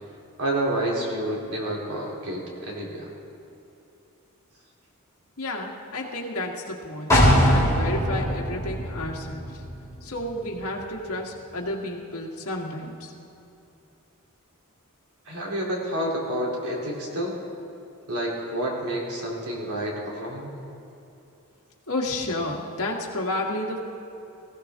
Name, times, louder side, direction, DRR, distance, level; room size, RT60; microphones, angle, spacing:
voice 1, 0.4-3.1 15.2-17.3 18.1-20.5, right 1 dB, 85° right, -3 dB, 3.4 m, -29 dB
voice 2, 5.4-9.6 10.0-13.1 21.9-23.8, left 1 dB, 70° left, -1 dB, 1.9 m, -31 dB
sound 1, 7.1-10.8 11.2-11.3, equal, 15° left, 3.0 m, -22 dB
19.0 x 16.0 x 3.7 m, 2.9 s
head